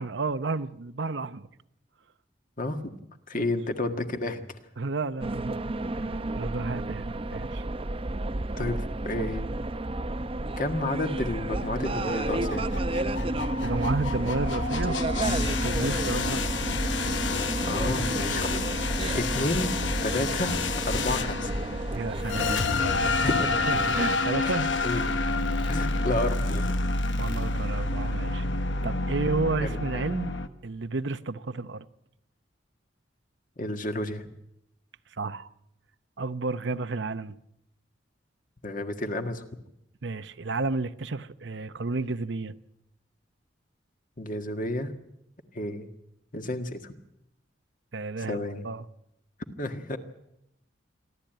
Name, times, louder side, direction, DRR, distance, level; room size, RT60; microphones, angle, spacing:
voice 1, 0.0-1.5 3.3-3.5 4.8-7.6 13.6-16.4 21.9-23.2 23.7-24.7 27.2-28.5 28.8-30.3 30.6-31.8 35.2-35.5 36.2-37.4 40.0-42.5 47.9-48.8, right 3 dB, 70° right, 0.8 m, -32 dB
voice 2, 2.6-2.9 3.3-4.4 8.6-8.8 9.0-9.5 10.6-12.7 15.7-16.0 17.4-18.6 19.1-19.7 20.0-21.5 23.2-23.6 24.4-24.5 24.8-25.1 25.7-26.8 29.6-30.0 33.6-34.3 38.6-39.6 44.2-44.9 45.5-45.9 46.3-46.9 48.3-48.6 49.6-50.0, left 1 dB, 45° left, 1.7 m, -31 dB
sound 1, 5.2-24.2, right 2 dB, 30° right, 0.7 m, -31 dB
sound 2, 11.6-30.5, left 3 dB, 75° left, 1.2 m, -29 dB
27.0 x 12.0 x 9.0 m
head